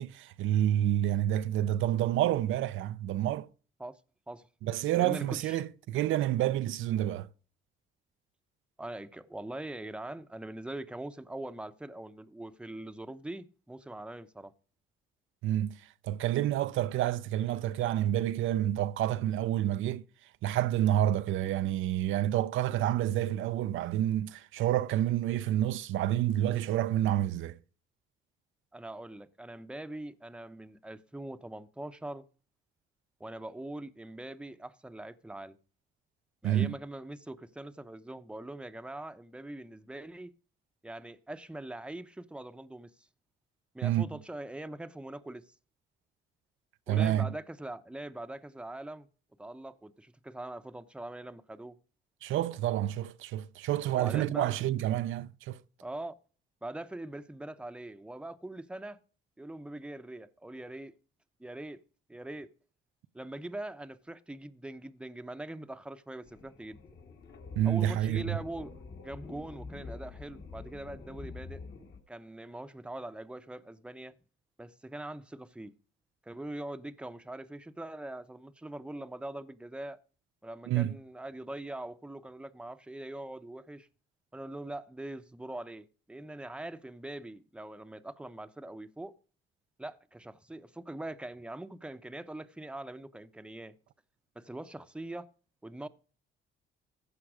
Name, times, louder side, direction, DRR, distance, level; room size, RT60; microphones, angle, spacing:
voice 1, 0.0-3.5 4.6-7.3 15.4-15.7 16.0-20.0 20.4-27.6 36.4-36.7 43.8-44.0 46.9-47.3 52.2-55.6 67.6-68.4 80.7-81.0, right 12 dB, 80° right, 0.6 m, -29 dB
voice 2, 4.9-5.6 8.8-14.5 28.7-32.2 33.2-35.6 36.4-40.3 40.8-43.1 43.7-45.5 46.9-49.1 49.4-51.8 54.0-54.5 55.8-56.1 56.6-59.0 59.4-60.9 61.4-61.8 62.1-62.5 63.1-66.8 67.6-68.7 69.0-71.6 72.1-74.1 74.6-75.7 76.2-80.0 80.4-83.9 84.3-89.1 89.8-93.7 94.4-95.3 95.6-95.9, right 1 dB, 5° right, 0.7 m, -42 dB
sound 1, 66.2-72.0, left 4 dB, 55° left, 2.2 m, -46 dB
15.0 x 5.9 x 4.8 m
cardioid pair, 90°, 20 cm